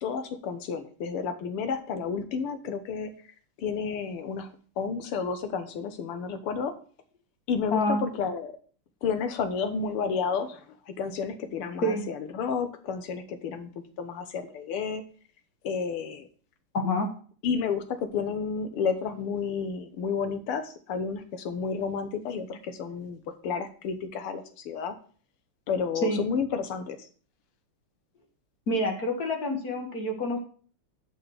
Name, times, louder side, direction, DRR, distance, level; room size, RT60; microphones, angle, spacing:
voice 1, 0.0-3.1 3.6-4.5 4.8-6.7 7.5-8.5 9.0-13.7 14.0-15.0 15.6-16.3 17.4-24.9 25.7-27.0, left 6 dB, 80° left, 9 dB, 1.9 m, -31 dB
voice 2, 16.7-17.1 26.0-26.2 28.7-30.4, left 1 dB, 45° left, 3 dB, 1.9 m, -27 dB
7.4 x 5.7 x 6.3 m, 0.43 s
omnidirectional pair, 2.4 m